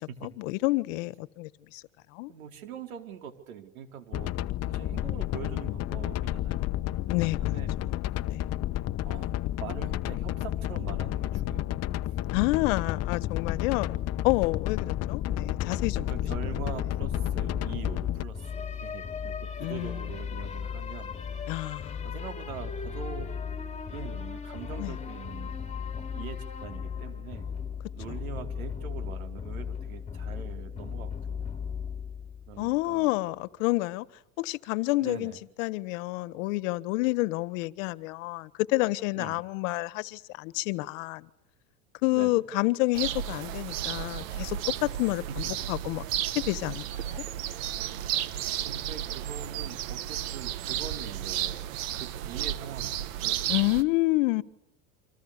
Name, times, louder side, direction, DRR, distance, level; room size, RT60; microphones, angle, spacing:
voice 1, 0.2-1.8 2.1-2.3 7.1-7.6 8.3-8.5 12.3-14.0 14.2-16.1 19.6-20.0 21.5-22.1 24.8-25.0 32.6-34.0 34.4-35.3 35.6-41.3 42.0-46.0 46.3-47.2 53.5-54.4, left 21 dB, 65° left, 1.5 m, -29 dB
voice 2, 2.3-4.3 4.7-6.7 7.4-7.7 9.0-11.8 16.0-21.1 22.0-23.3 23.9-25.6 26.0-27.5 27.9-31.6 32.5-33.2 35.0-35.4 39.2-39.4 42.1-42.4 48.6-53.4, right 8 dB, 90° right, 4.6 m, -43 dB
sound 1, 4.1-18.2, left 14 dB, 40° left, 1.1 m, -31 dB
sound 2, 15.3-32.9, left 7 dB, 15° left, 5.3 m, -36 dB
sound 3, 42.9-53.8, right 12 dB, 70° right, 1.8 m, -33 dB
29.0 x 26.0 x 6.8 m
supercardioid pair, 110°, 41 cm